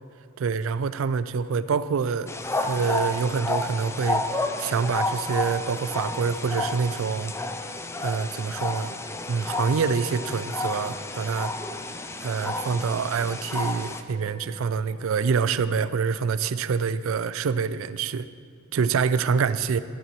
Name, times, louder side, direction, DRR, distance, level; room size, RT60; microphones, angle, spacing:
voice 1, 0.4-2.3 2.6-7.3 8.0-8.9 9.3-11.5 12.2-18.3 18.7-19.8, right 5 dB, 80° right, 15 dB, 0.4 m, -26 dB
sound 1, 2.3-14.0, left 2 dB, 15° left, 0.4 m, -31 dB
sound 2, 5.0-15.3, left 1 dB, 40° left, 1.2 m, -48 dB
Bell, 9.5-13.1, left 4 dB, 75° left, 0.7 m, -45 dB
12.5 x 12.0 x 3.1 m, 2.3 s
head